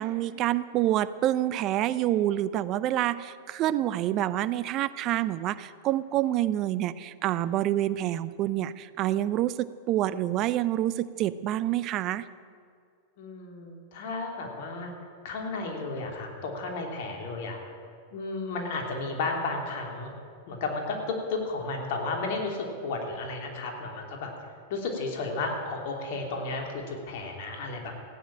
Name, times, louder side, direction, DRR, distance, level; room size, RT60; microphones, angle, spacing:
voice 1, 0.0-12.3, right 13 dB, 40° right, 16 dB, 0.7 m, -27 dB
voice 2, 13.2-14.9 15.2-17.6 18.1-20.1 20.5-24.3 24.7-27.9, left 3 dB, 60° left, 2 dB, 3.1 m, -33 dB
16.0 x 9.9 x 8.8 m, 2.2 s
hypercardioid pair, 100°, 0 cm